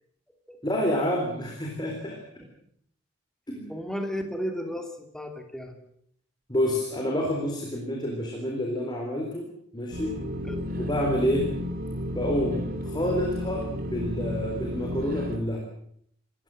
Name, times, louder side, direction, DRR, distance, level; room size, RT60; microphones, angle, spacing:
voice 1, 0.6-2.2 3.5-3.8 6.5-10.2 10.8-11.5 12.1-15.6, equal, 20° left, 1 dB, 3.8 m, -28 dB
voice 2, 3.7-5.8 10.5-10.7, equal, 5° left, 5 dB, 2.7 m, -34 dB
sound 1, 9.9-15.4, left 1 dB, 45° right, 3.4 m, -32 dB
27.0 x 15.0 x 7.8 m, 0.68 s
head